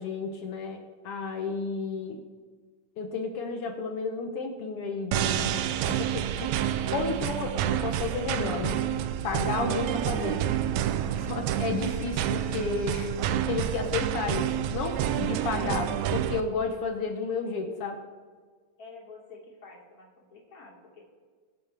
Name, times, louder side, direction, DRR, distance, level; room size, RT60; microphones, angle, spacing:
voice 1, 0.0-2.2 3.0-8.8 9.2-10.4 11.2-18.0, left 4 dB, 65° left, 4 dB, 1.6 m, -32 dB
sound 1, 5.1-16.4, right 10 dB, 80° right, 1.8 m, -29 dB
voice 2, 18.8-21.0, left 4 dB, 30° left, -3 dB, 2.8 m, -49 dB
22.5 x 7.9 x 3.4 m, 1.5 s
omnidirectional pair, 3.3 m